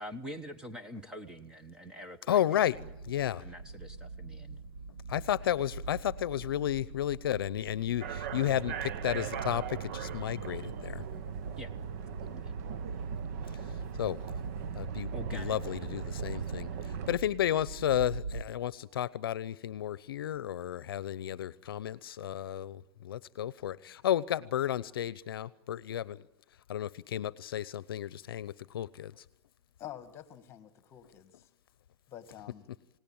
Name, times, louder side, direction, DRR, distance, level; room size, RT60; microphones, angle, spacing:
voice 1, 0.0-2.4 2.7-2.9 3.4-4.6 11.6-11.7 12.2-12.5 15.1-16.1, equal, 5° right, 8 dB, 1.0 m, -45 dB
voice 2, 2.3-2.8 3.1-3.4 5.1-11.0 14.0-14.2 14.7-26.3 26.7-29.2, left 11 dB, 60° left, 18 dB, 0.8 m, -32 dB
sound 1, 2.7-18.4, right 4 dB, 70° right, 2.6 m, -42 dB
sound 2, 8.0-17.2, right 9 dB, 40° right, 0.9 m, -40 dB
voice 3, 29.8-31.5 32.1-32.7, left 11 dB, 20° left, 11 dB, 1.8 m, -48 dB
29.0 x 18.5 x 8.9 m, 0.88 s
hypercardioid pair, 160°, 13 cm